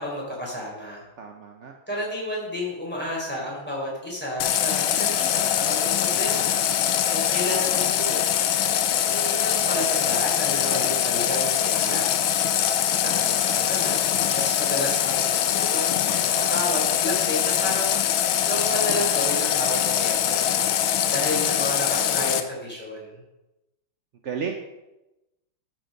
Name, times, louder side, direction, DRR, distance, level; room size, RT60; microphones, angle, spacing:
voice 1, 0.0-1.0 1.9-6.6 7.1-8.4 9.0-12.1 12.9-20.5 20.8-23.2, equal, 5° left, -5 dB, 3.9 m, -31 dB
voice 2, 1.2-1.7 20.9-21.1 21.9-22.3 24.2-24.6, right 6 dB, 70° right, 3 dB, 0.7 m, -34 dB
Water tap faucet, 4.4-22.4, left 10 dB, 75° left, 1.4 m, -23 dB
12.0 x 6.1 x 5.2 m, 0.98 s
omnidirectional pair, 2.3 m